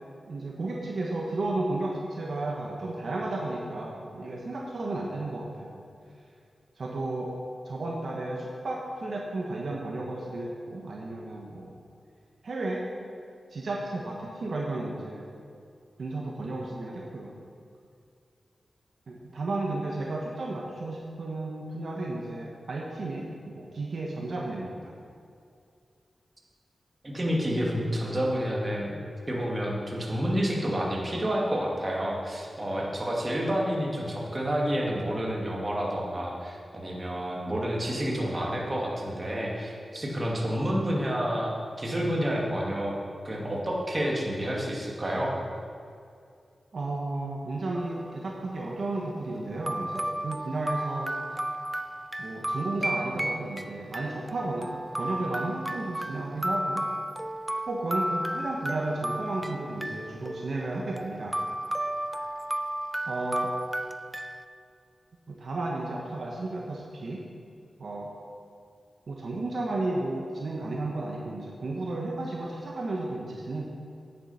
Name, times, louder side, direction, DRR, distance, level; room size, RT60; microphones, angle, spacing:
voice 1, 0.3-5.8 6.8-7.3 7.6-11.7 12.4-12.8 13.5-15.3 16.0-17.3 19.1-24.9 46.7-51.1 52.2-56.8 57.7-61.4 63.1-63.5 65.3-67.2 67.8-68.1 69.1-73.6, right 2 dB, 70° right, -2 dB, 1.2 m, -33 dB
voice 2, 27.0-29.0 29.3-41.5 41.8-43.0 43.2-45.4, equal, 35° right, -3 dB, 2.3 m, -29 dB
sound 1, 47.7-48.3 49.2-49.3 49.7-64.5, right 1 dB, 15° right, 0.4 m, -33 dB
9.2 x 7.4 x 5.6 m, 2.4 s
cardioid pair, 55°, 0 cm